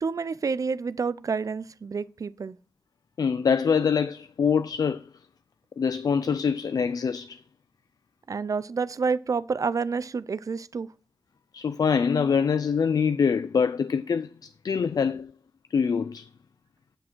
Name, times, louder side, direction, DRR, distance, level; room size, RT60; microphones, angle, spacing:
voice 1, 0.0-2.6 8.3-10.9, right 5 dB, 55° right, 0.4 m, -29 dB
voice 2, 3.2-5.1 5.8-7.4 11.5-15.3 15.7-16.3, left 6 dB, 70° left, 0.4 m, -24 dB
9.6 x 6.1 x 4.5 m
wide cardioid pair, 90°, 7 cm